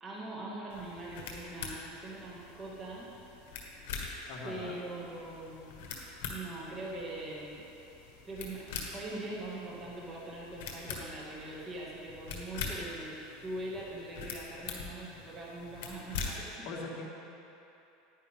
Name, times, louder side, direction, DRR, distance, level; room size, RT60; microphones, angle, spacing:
voice 1, 0.0-3.1 4.4-5.7 6.3-7.6 8.2-8.6 8.9-13.1 13.4-16.7, right 2 dB, 25° right, -5 dB, 2.0 m, -42 dB
sound 1, 0.7-16.6, left 4 dB, 70° left, 1.6 m, -44 dB
voice 2, 4.3-4.7 16.6-17.1, left 3 dB, 50° left, -2 dB, 1.6 m, -41 dB
10.0 x 9.9 x 3.7 m, 2.9 s
supercardioid pair, 130°, 0 cm